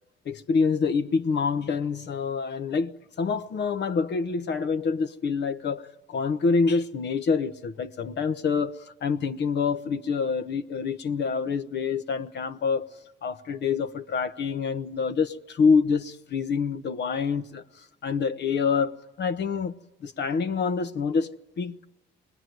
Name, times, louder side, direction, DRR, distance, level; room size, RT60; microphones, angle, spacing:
voice 1, 0.2-12.9 13.2-17.6 18.0-19.7 20.0-21.8, left 5 dB, 60° left, 1.1 m, -26 dB
27.0 x 21.0 x 9.3 m
cardioid pair, 90°, 20 cm